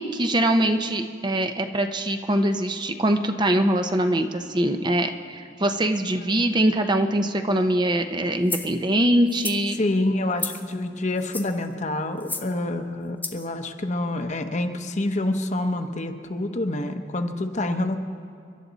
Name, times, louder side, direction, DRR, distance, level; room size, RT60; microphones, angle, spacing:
voice 1, 0.0-9.8, right 1 dB, 25° right, 7 dB, 0.7 m, -23 dB
sound 1, 8.5-8.7 9.3-9.6 10.4-10.7 11.2-11.6 12.2-12.5 13.2-13.5, left 4 dB, 10° left, 0.7 m, -32 dB
voice 2, 9.7-18.0, left 1 dB, 40° left, 6 dB, 0.9 m, -27 dB
29.5 x 11.5 x 4.1 m, 2.4 s
head